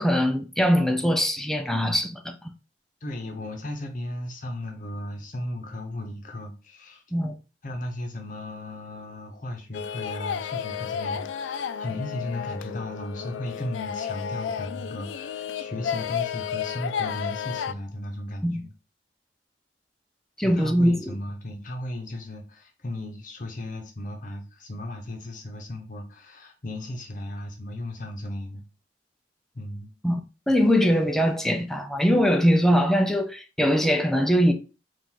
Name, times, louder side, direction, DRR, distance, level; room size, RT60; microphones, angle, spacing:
voice 1, 0.0-2.5 7.1-7.4 18.4-18.6 20.4-21.1 30.0-30.2 30.5-34.5, equal, ahead, 0.4 m, -22 dB
voice 2, 3.0-7.0 7.6-18.7 20.4-28.6 29.5-29.9, left 1 dB, 45° left, 0.8 m, -36 dB
sound 1, 9.7-17.7, left 8 dB, 85° left, 0.3 m, -32 dB
4.5 x 2.5 x 3.7 m
head